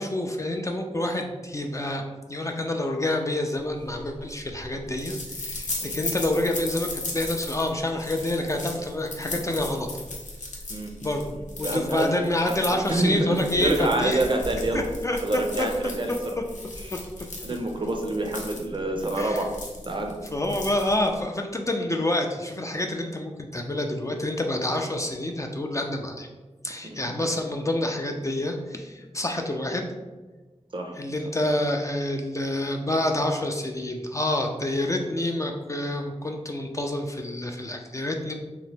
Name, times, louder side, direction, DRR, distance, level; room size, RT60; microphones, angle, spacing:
voice 1, 0.0-2.0 2.3-9.9 11.0-11.3 11.6-14.3 14.7-15.7 16.9-17.0 19.2-19.4 20.3-26.3 26.6-29.9 31.0-38.3, left 1 dB, 25° left, 3 dB, 0.3 m, -28 dB
sound 1, 3.8-21.2, left 2 dB, 85° left, 0.5 m, -37 dB
voice 2, 11.6-12.1 12.4-14.8 15.2-16.1 16.9-17.0 17.4-19.5 19.9-20.1 26.8-27.1 30.7-31.0, right 2 dB, 40° right, 3 dB, 0.5 m, -27 dB
2.8 x 2.0 x 3.3 m, 1.2 s
cardioid pair, 40°, 12 cm